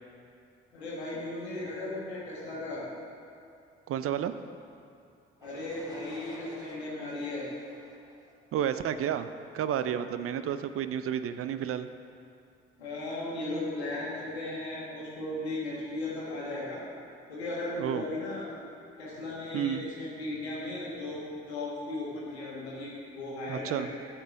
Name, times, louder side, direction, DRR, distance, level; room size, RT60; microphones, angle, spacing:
voice 1, 0.7-2.8 5.4-7.5 12.8-16.8 17.3-18.5 19.0-21.2 21.5-23.9, left 2 dB, 90° left, -6 dB, 1.5 m, -36 dB
voice 2, 3.9-4.3 8.5-9.3 9.5-11.9 17.8-18.0 19.5-19.8 23.5-23.9, right 9 dB, 45° right, 11 dB, 0.5 m, -31 dB
sound 1, 5.4-9.3, equal, 10° right, 1.6 m, -52 dB
8.1 x 4.5 x 7.0 m, 2.5 s
hypercardioid pair, 40°, 31 cm